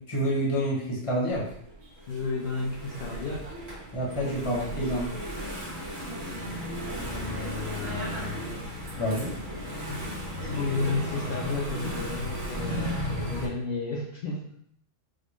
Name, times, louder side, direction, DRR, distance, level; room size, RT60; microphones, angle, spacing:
voice 1, 0.0-1.5 3.9-5.1 9.0-9.3, equal, 30° left, -4 dB, 0.8 m, -28 dB
Engine / Mechanisms, 1.3-13.5, equal, 80° right, 1.3 m, -35 dB
voice 2, 2.1-3.5 4.1-4.8 7.0-8.8 9.9-10.1 10.4-14.5, left 3 dB, 60° left, -2 dB, 0.7 m, -33 dB
4.2 x 2.2 x 3.0 m, 0.67 s
omnidirectional pair, 1.3 m